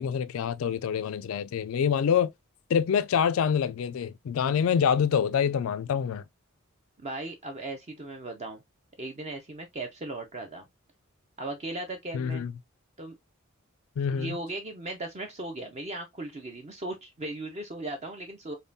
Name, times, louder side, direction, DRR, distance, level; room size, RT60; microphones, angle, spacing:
voice 1, 0.0-2.3 2.7-6.2 12.1-12.5 14.0-14.4, left 7 dB, 65° left, 0.3 m, -26 dB
voice 2, 7.0-8.6 9.0-10.7 11.4-12.5 13.0-13.2 14.1-18.5, right 2 dB, 30° right, 0.5 m, -37 dB
5.3 x 2.2 x 2.6 m
head